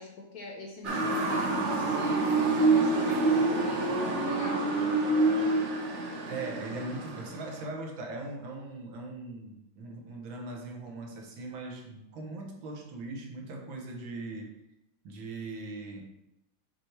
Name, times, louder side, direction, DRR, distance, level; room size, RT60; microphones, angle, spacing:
voice 1, 0.0-3.9 4.2-4.7, left 3 dB, 60° left, 0 dB, 1.1 m, -42 dB
Motor vehicle (road) / Siren, 0.8-7.6, right 3 dB, 60° right, 0.7 m, -27 dB
voice 2, 6.3-14.5 15.0-16.0, right 2 dB, 80° right, 2 dB, 1.8 m, -40 dB
6.7 x 3.3 x 4.4 m, 0.87 s
omnidirectional pair, 2.2 m